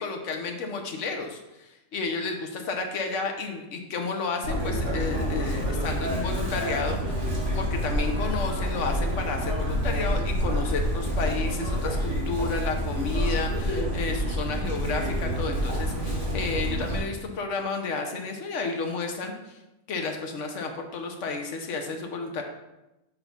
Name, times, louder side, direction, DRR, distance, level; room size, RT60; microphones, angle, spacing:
voice 1, 0.0-19.6 19.9-22.4, left 4 dB, 65° left, 4 dB, 1.2 m, -32 dB
Chirp tweet, 4.4-17.0, equal, 60° right, 2.7 m, -28 dB
6.0 x 3.9 x 5.3 m, 0.96 s
omnidirectional pair, 1.4 m